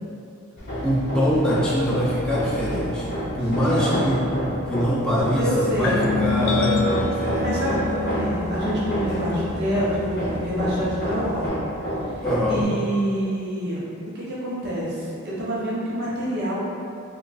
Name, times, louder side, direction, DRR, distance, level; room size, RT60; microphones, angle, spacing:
Hammer, 0.6-12.6, equal, 45° left, 0.8 m, -30 dB
voice 1, 0.8-3.1 3.3-4.2 4.7-7.5 12.2-12.7, equal, 5° left, -8 dB, 0.5 m, -23 dB
voice 2, 3.6-4.1 5.4-6.0 7.4-11.5 12.0-12.1 12.5-13.8 14.1-16.6, equal, 50° right, -8 dB, 0.8 m, -27 dB
sound 1, 5.8-11.5, left 3 dB, 60° left, 0.3 m, -28 dB
4.3 x 2.4 x 2.4 m, 2.6 s
head